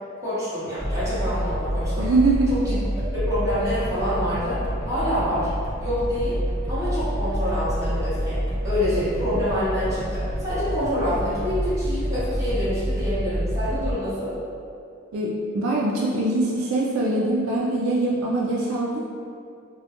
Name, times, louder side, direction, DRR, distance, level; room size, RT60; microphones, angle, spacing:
voice 1, 0.2-2.1 2.5-2.8 3.1-5.5 5.8-6.4 6.7-8.4 8.6-14.3, equal, 15° right, -13 dB, 1.0 m, -26 dB
sound 1, 0.8-13.9, equal, 30° left, 1.0 m, -28 dB
voice 2, 2.0-2.4 15.1-19.0, right 2 dB, 75° right, -4 dB, 0.3 m, -23 dB
2.2 x 2.1 x 2.8 m, 2.4 s
head